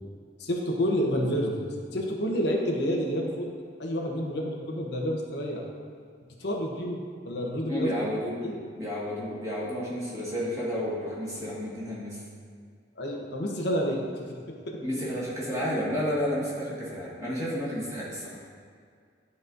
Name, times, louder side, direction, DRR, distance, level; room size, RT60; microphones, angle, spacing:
voice 1, 0.4-1.6 1.9-3.5 3.8-5.6 6.4-7.0 7.2-7.9 8.4-8.6 13.0-14.0 14.5-14.8, equal, 65° left, -1 dB, 0.9 m, -29 dB
voice 2, 7.7-8.3 8.7-12.2 14.8-18.4, equal, 20° right, -8 dB, 1.7 m, -31 dB
11.5 x 4.1 x 2.6 m, 2.1 s
head